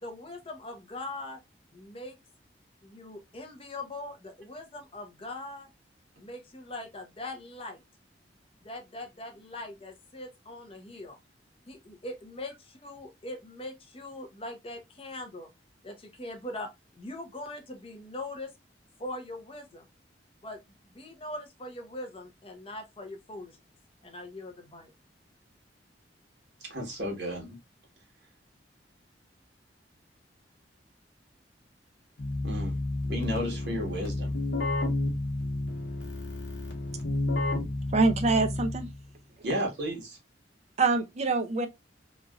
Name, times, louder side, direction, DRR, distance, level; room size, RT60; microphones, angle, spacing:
voice 1, 0.0-1.4 1.7-2.2 2.8-5.7 6.2-7.8 8.6-11.2 11.7-15.5 15.8-16.7 17.0-18.5 19.0-19.9 20.4-20.6 20.9-23.6 24.0-24.9, left 1 dB, 30° left, 0.7 m, -41 dB
voice 2, 26.6-27.6 32.4-32.8 33.1-34.3 39.4-40.2, equal, 65° right, 1.1 m, -33 dB
Keyboard (musical), 32.2-39.0, left 2 dB, 85° left, 1.1 m, -31 dB
voice 3, 37.9-38.9 40.8-41.7, right 3 dB, 40° right, 0.5 m, -25 dB
3.1 x 2.5 x 2.3 m
head